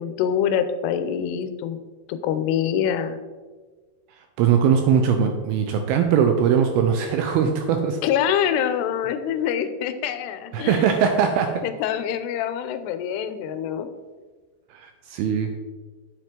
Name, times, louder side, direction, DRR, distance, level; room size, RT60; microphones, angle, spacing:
voice 1, 0.0-1.8 2.1-3.2 8.0-10.9 11.6-13.9, left 9 dB, 80° left, 10 dB, 2.7 m, -25 dB
voice 2, 4.4-8.0 10.5-11.6 14.7-15.5, right 7 dB, 85° right, 5 dB, 2.2 m, -21 dB
8.9 x 7.8 x 3.7 m, 1.4 s
omnidirectional pair, 4.9 m